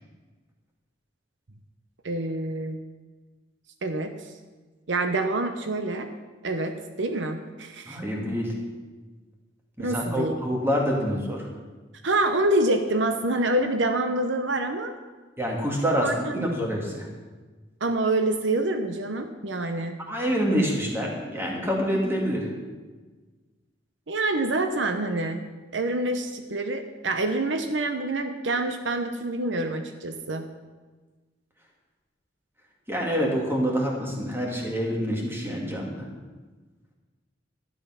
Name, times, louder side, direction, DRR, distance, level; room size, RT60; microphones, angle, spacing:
voice 1, 2.0-2.8 3.8-4.2 4.9-6.1 6.4-8.0 9.8-10.4 12.0-14.9 16.0-16.5 17.8-19.9 24.1-25.4 25.7-30.5, right 2 dB, 70° right, 7 dB, 0.8 m, -26 dB
voice 2, 7.9-8.5 9.8-11.5 15.4-17.1 20.1-22.5 32.9-36.0, equal, 10° right, -1 dB, 2.3 m, -26 dB
12.5 x 10.5 x 5.8 m, 1.3 s
head